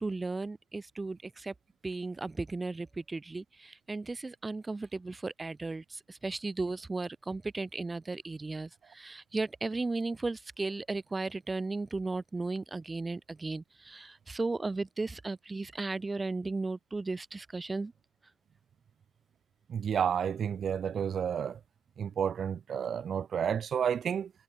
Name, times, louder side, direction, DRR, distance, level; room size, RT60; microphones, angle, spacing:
voice 1, 0.0-1.5 1.8-17.9, right 3 dB, 20° right, 1.0 m, -35 dB
voice 2, 19.7-21.6 22.0-24.3, right 8 dB, 55° right, 1.5 m, -31 dB
cardioid pair, 90°, 0 cm